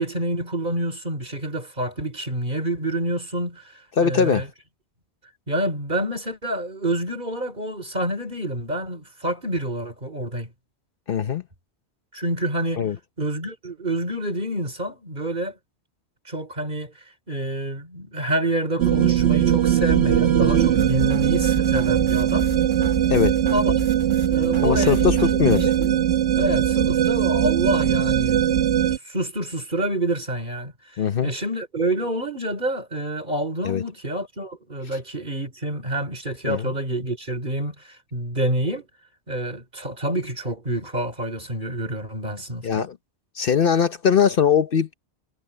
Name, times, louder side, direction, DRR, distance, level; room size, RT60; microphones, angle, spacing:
voice 1, 0.0-3.7 4.0-4.5 5.5-10.5 12.1-12.9 13.2-15.6 16.3-16.9 17.3-22.5 23.5-23.8 24.3-26.0 26.3-38.8 39.3-42.9, right 1 dB, 45° right, 4.2 m, -28 dB
voice 2, 4.0-4.4 11.1-11.4 12.8-13.0 23.1-23.4 24.6-25.7 31.0-31.3 33.6-33.8 36.4-36.7 42.6-43.0 43.4-44.9, left 7 dB, 55° left, 0.9 m, -21 dB
sound 1, 18.8-29.0, right 10 dB, 75° right, 1.2 m, -20 dB
sound 2, 20.8-25.9, right 2 dB, 25° right, 1.2 m, -33 dB
omnidirectional pair, 1.1 m